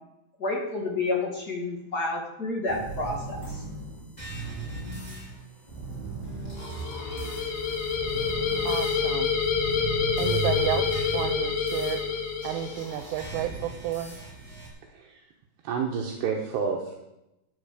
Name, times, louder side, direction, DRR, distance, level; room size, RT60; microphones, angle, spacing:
voice 1, 0.4-3.6, left 2 dB, 35° left, -1 dB, 1.7 m, -30 dB
sound 1, 2.7-14.7, right 2 dB, 10° left, 4.6 m, -37 dB
sound 2, 6.6-13.0, left 6 dB, 90° left, 4.5 m, -28 dB
voice 2, 8.6-9.4 10.2-12.0 12.4-14.2, right 12 dB, 85° right, 8 dB, 3.2 m, -31 dB
voice 3, 14.9-15.3 15.6-17.0, right 6 dB, 70° right, 1 dB, 3.0 m, -29 dB
14.0 x 10.5 x 5.0 m, 0.90 s
omnidirectional pair, 5.5 m